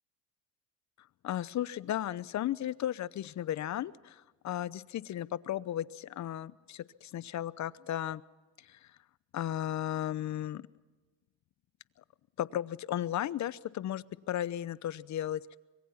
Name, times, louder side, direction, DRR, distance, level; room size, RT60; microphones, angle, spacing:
voice 1, 1.2-8.2 8.6-8.9 9.3-10.6 12.4-15.6, left 12 dB, 50° left, 18 dB, 0.9 m, -35 dB
24.5 x 22.0 x 5.9 m, 1.2 s
supercardioid pair, 90°, 38 cm